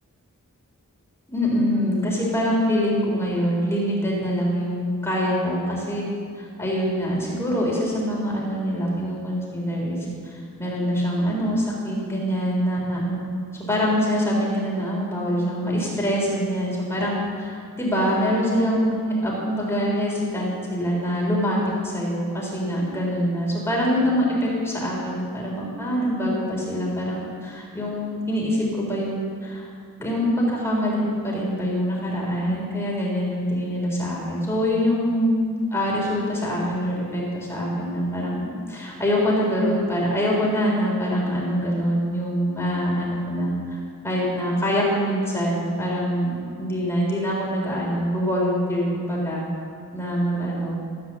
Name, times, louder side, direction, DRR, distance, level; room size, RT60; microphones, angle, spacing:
voice 1, 1.3-6.1 6.4-13.2 13.6-21.6 21.8-29.7 30.0-35.3 35.7-43.5 44.0-46.3 46.6-49.4 49.9-50.8, equal, 10° left, -4 dB, 3.5 m, -24 dB
14.0 x 9.7 x 7.4 m, 2.2 s
head